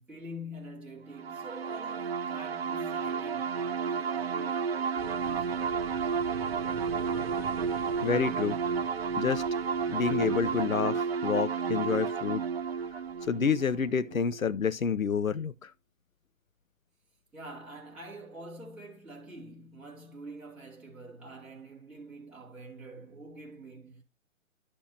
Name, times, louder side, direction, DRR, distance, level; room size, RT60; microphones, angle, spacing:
voice 1, 0.0-5.7 17.3-24.0, right 1 dB, 5° right, 2.1 m, -46 dB
sound 1, 1.2-14.7, right 6 dB, 50° right, 0.6 m, -32 dB
sound 2, 4.5-14.0, left 1 dB, 20° left, 5.0 m, -56 dB
sound 3, 5.0-10.6, right 5 dB, 25° right, 2.1 m, -44 dB
voice 2, 8.0-8.6 9.2-9.4 9.9-12.4 13.3-15.7, left 6 dB, 85° left, 0.7 m, -28 dB
11.5 x 6.0 x 2.7 m
figure-of-eight pair, 135°, 40 cm